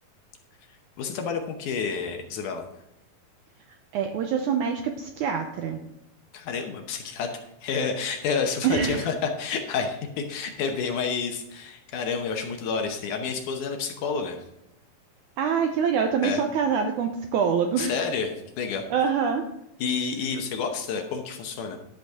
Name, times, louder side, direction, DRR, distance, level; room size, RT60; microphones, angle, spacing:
voice 1, 1.0-2.6 6.3-7.3 7.6-14.4 16.2-16.4 17.8-18.9 19.8-21.8, left 5 dB, 70° left, 4 dB, 2.1 m, -29 dB
voice 2, 3.7-5.8 8.6-9.1 15.4-18.0 18.9-19.5, right 6 dB, 80° right, 5 dB, 1.8 m, -25 dB
11.5 x 7.9 x 3.6 m, 0.85 s
omnidirectional pair, 4.2 m